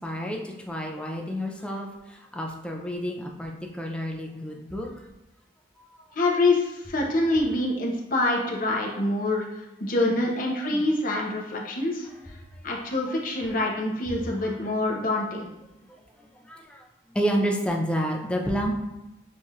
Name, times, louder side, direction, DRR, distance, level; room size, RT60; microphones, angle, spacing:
voice 1, 0.0-4.9 5.8-6.1 10.0-10.2 10.7-10.8 16.5-16.8 17.1-18.7, equal, 5° left, 0 dB, 0.5 m, -30 dB
voice 2, 6.1-12.1 12.6-15.5, left 2 dB, 50° left, -1 dB, 0.8 m, -26 dB
6.3 x 2.4 x 2.8 m, 0.96 s
head